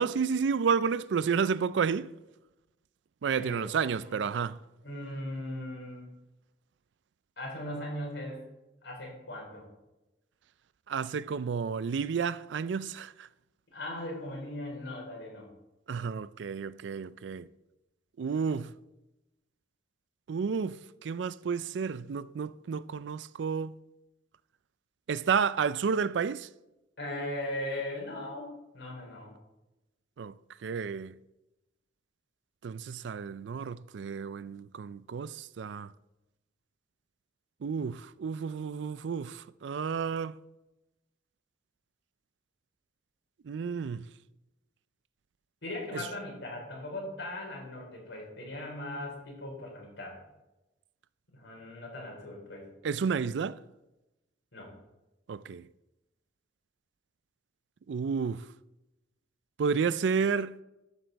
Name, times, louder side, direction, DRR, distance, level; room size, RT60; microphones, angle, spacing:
voice 1, 0.0-2.1 3.2-4.6 10.9-13.3 15.9-17.5 18.2-18.7 20.3-23.7 25.1-26.5 30.2-31.2 32.6-35.9 37.6-40.4 43.4-44.1 45.9-46.1 52.8-53.6 55.3-55.7 57.9-58.5 59.6-60.6, right 6 dB, 75° right, 0.4 m, -31 dB
voice 2, 3.3-4.2 4.8-6.1 7.4-8.4 8.8-9.7 13.7-15.5 27.0-29.3 45.6-50.2 51.3-52.7 54.5-54.7, left 1 dB, 85° left, 4.1 m, -39 dB
12.5 x 7.8 x 4.1 m
head